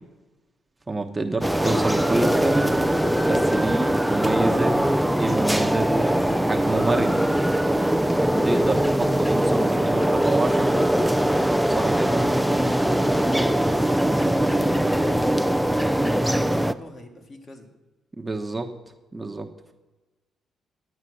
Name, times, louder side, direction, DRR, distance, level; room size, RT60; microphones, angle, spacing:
voice 1, 0.9-2.8 3.2-4.8 5.1-6.0 6.5-7.2 8.4-10.7 11.7-12.2 18.2-18.7 19.1-19.5, right 2 dB, 20° right, 3 dB, 1.0 m, -27 dB
sound 1, 1.4-16.7, right 1 dB, ahead, 0.4 m, -21 dB
voice 2, 16.3-17.7, left 2 dB, 45° left, 3 dB, 1.9 m, -43 dB
10.0 x 8.9 x 6.2 m, 1.1 s
cardioid pair, 90°, 0 cm